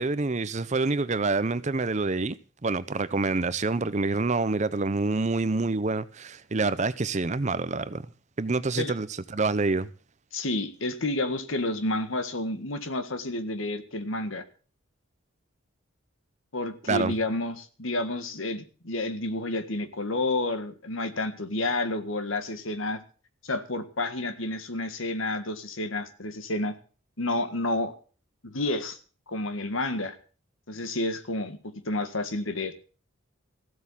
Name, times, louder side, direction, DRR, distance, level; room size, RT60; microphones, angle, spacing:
voice 1, 0.0-2.4 2.6-8.0 8.4-9.1 9.3-9.9 16.9-17.1, right 3 dB, 35° right, 0.7 m, -27 dB
voice 2, 10.3-14.4 16.5-23.0 23.4-26.7 27.2-27.9 28.4-29.0 29.3-30.2 30.7-32.7, left 2 dB, 80° left, 1.8 m, -30 dB
15.0 x 7.9 x 7.3 m
head